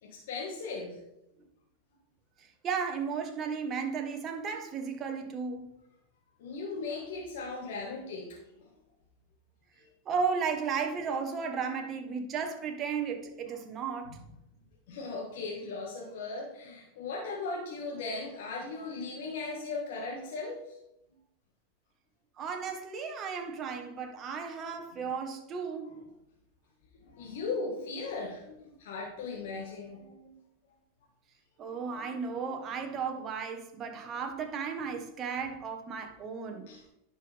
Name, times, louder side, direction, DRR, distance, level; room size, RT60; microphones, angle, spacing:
voice 1, 0.0-1.0 6.4-8.7 9.8-9.9 14.1-14.2 14.9-20.8 23.9-24.0 24.3-24.4 27.0-30.4 36.5-36.8, left 3 dB, 75° left, 1.8 m, -38 dB
voice 2, 2.6-5.7 10.0-14.2 22.4-26.0 31.6-36.6, right 6 dB, 35° right, 1.4 m, -34 dB
11.0 x 5.3 x 3.6 m
hypercardioid pair, 110°, 0 cm